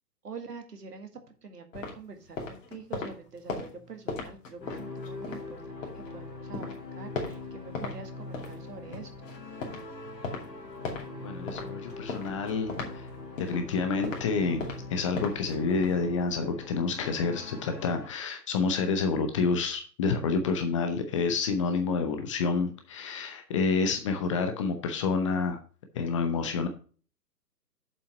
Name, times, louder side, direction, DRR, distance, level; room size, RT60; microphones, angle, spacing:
voice 1, 0.2-1.1 1.4-9.1, right 4 dB, 70° right, 6 dB, 2.0 m, -45 dB
sound 1, 1.7-6.1 6.5-8.0 8.3-16.0, left 3 dB, 50° left, 2.7 m, -39 dB
sound 2, 4.6-18.1, left 3 dB, 85° left, 2.0 m, -42 dB
voice 2, 11.2-13.1 13.4-14.6 14.9-25.6 25.9-26.7, left 4 dB, 20° left, 6 dB, 0.6 m, -28 dB
7.5 x 5.5 x 5.5 m, 0.39 s
figure-of-eight pair, 120°, 49 cm